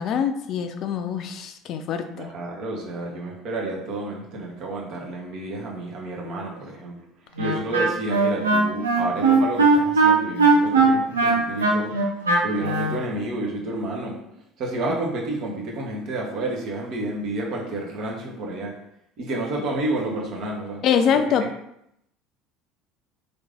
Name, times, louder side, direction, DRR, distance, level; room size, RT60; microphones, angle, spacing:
voice 1, 0.0-2.3 20.8-21.5, left 7 dB, 50° left, 7 dB, 0.4 m, -24 dB
voice 2, 2.1-7.1 7.4-12.2 12.4-18.8 19.2-20.8 21.1-21.2, right 1 dB, 50° right, -1 dB, 1.0 m, -30 dB
Wind instrument woodwind instrument, 7.4-13.0, right 3 dB, 80° right, 0.6 m, -19 dB
3.2 x 2.6 x 3.5 m, 0.76 s
figure-of-eight pair, 60°, 0 cm